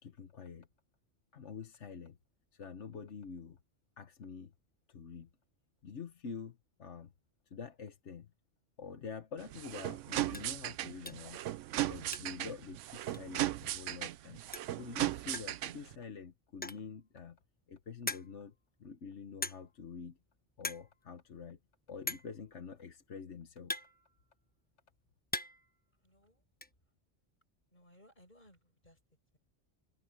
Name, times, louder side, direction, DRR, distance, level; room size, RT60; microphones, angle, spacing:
voice 1, 0.0-0.7 1.3-2.2 2.5-3.6 4.0-4.5 4.9-5.3 5.8-7.1 7.5-8.3 8.8-11.4 11.8-14.4 14.7-17.4 17.7-18.5 18.8-20.2 20.6-21.6 21.9-23.7, left 5 dB, 75° left, 1.5 m, -47 dB
sound 1, 9.4-9.5 9.9-10.0 10.3-10.6 11.1-11.3 11.7-12.5 12.8-12.9 13.1-13.2 14.2-14.3 14.5-14.8 15.3-15.6 16.4-16.9 17.5-17.6 18.1-18.5 19.4-19.8 20.1-20.3 20.6-20.9 21.2-21.3 22.1-22.4 23.2-24.5 24.9-25.7 26.0-26.7, left 2 dB, 10° left, 1.0 m, -41 dB
sound 2, 9.4-16.0, right 14 dB, 90° right, 1.0 m, -37 dB
voice 2, 26.0-26.5 27.7-29.0, left 1 dB, 40° left, 6.9 m, -63 dB
omnidirectional pair, 1.2 m